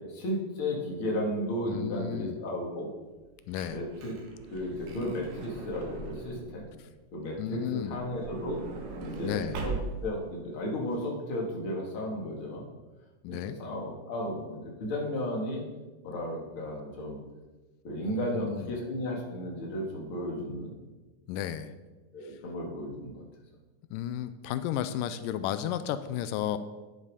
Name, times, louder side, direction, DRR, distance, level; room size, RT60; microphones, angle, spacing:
voice 1, 0.0-2.9 3.7-4.1 4.5-6.7 7.1-8.6 9.0-9.8 10.0-12.7 13.3-15.6 16.0-17.2 17.8-20.7 22.1-23.2, left 1 dB, 45° left, -1 dB, 2.8 m, -34 dB
voice 2, 1.6-2.4 3.5-3.8 7.4-8.0 9.2-9.6 13.2-13.6 18.0-18.7 21.3-21.7 23.9-26.6, left 10 dB, 90° left, 12 dB, 2.2 m, -33 dB
Truck / Door, 3.1-6.7 7.7-10.2 10.9-11.0 11.2-11.4, right 3 dB, 75° right, 3.2 m, -40 dB
11.0 x 9.7 x 4.9 m, 1.2 s
omnidirectional pair, 3.8 m